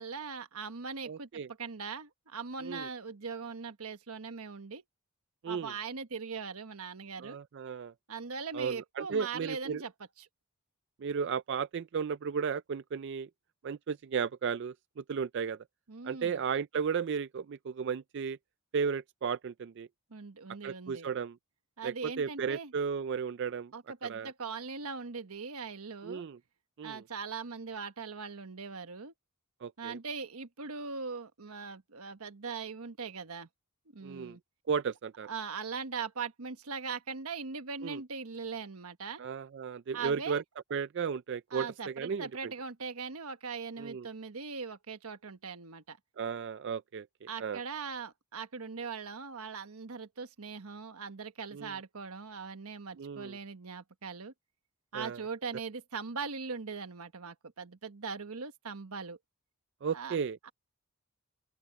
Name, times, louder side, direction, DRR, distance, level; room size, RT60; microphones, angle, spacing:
voice 1, 0.0-4.8 5.5-7.4 8.1-9.9 10.2-10.3 15.9-16.4 20.1-21.1 21.8-22.7 23.7-26.3 26.8-29.1 29.8-33.5 33.9-34.4 35.3-39.2 39.9-40.4 41.5-46.0 47.3-54.3 54.9-59.2 59.9-60.2 60.4-60.5, right 5 dB, 85° right, 1.2 m, -40 dB
voice 2, 1.1-1.5 2.6-2.9 5.4-5.7 7.2-7.9 8.5-9.8 11.0-13.3 13.6-15.6 16.0-18.4 18.7-19.9 20.6-21.4 21.8-23.7 24.1-24.3 26.0-26.4 26.8-27.0 29.6-30.0 34.0-34.4 34.7-35.3 37.8-38.0 39.2-40.4 40.7-42.5 43.8-44.1 46.2-47.1 47.4-47.6 51.5-51.7 53.0-53.4 54.9-55.2 59.8-60.4, right 6 dB, 55° right, 0.4 m, -34 dB
open air
head